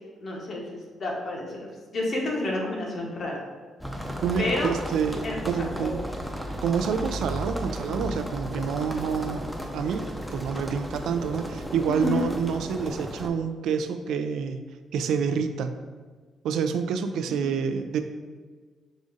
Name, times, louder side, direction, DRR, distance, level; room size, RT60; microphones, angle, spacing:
voice 1, 0.2-3.4 4.4-4.7 5.2-5.9 11.9-12.3 17.3-17.5, left 2 dB, 50° left, -1 dB, 1.0 m, -30 dB
sound 1, 3.8-13.3, equal, ahead, 0.6 m, -34 dB
voice 2, 4.2-6.0 6.6-9.4 9.7-14.6 14.9-15.8 16.4-18.0, right 6 dB, 80° right, 8 dB, 0.3 m, -28 dB
4.9 x 2.4 x 3.9 m, 1.4 s
cardioid pair, 90°, 0 cm